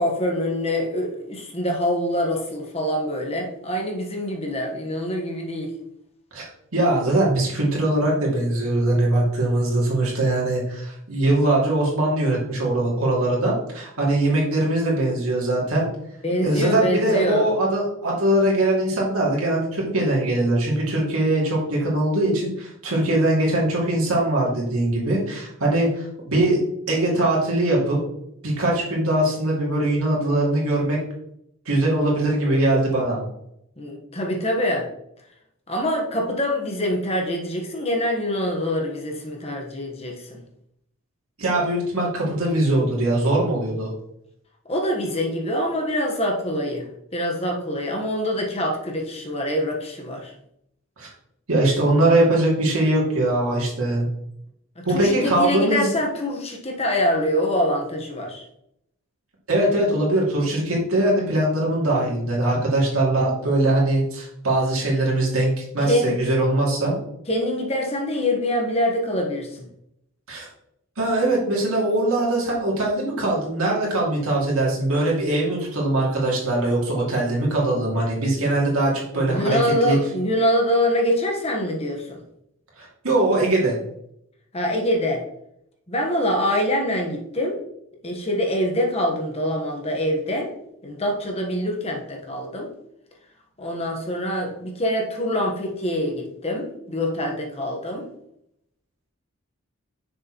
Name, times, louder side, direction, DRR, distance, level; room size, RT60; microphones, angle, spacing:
voice 1, 0.0-5.7 16.2-17.4 33.8-34.9 35.7-40.4 44.7-46.9 47.1-50.3 54.8-58.4 65.8-66.2 67.3-69.7 79.1-82.2 84.5-85.2 85.9-87.6 88.0-90.5 90.8-92.7 93.6-98.1, left 1 dB, 30° left, 1 dB, 1.2 m, -25 dB
voice 2, 6.3-15.9 16.4-26.6 26.9-28.0 28.4-31.0 31.7-33.2 41.4-43.9 51.0-51.1 51.5-54.0 54.8-55.9 59.5-66.9 70.3-70.5 71.0-80.0 82.8-83.8, right 1 dB, 80° right, -4 dB, 2.4 m, -21 dB
6.6 x 6.5 x 3.0 m, 0.76 s
head